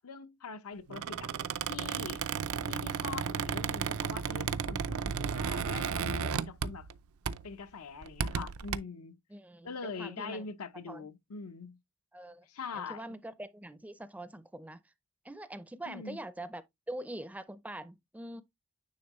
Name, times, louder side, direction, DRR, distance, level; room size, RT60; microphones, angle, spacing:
voice 1, 0.0-1.3 1.7-2.2 2.7-6.9 7.4-9.2 9.6-11.8 12.5-13.1 15.9-16.2, left 5 dB, 85° left, 0.7 m, -43 dB
Squeak, 0.9-7.0 7.3-7.5 8.0-8.8, right 6 dB, 75° right, 0.5 m, -34 dB
voice 2, 9.3-10.4 10.9-11.1 12.1-12.5 12.7-14.8 15.2-16.6 16.9-18.4, right 1 dB, 5° right, 0.4 m, -43 dB
9.5 x 3.6 x 3.0 m
head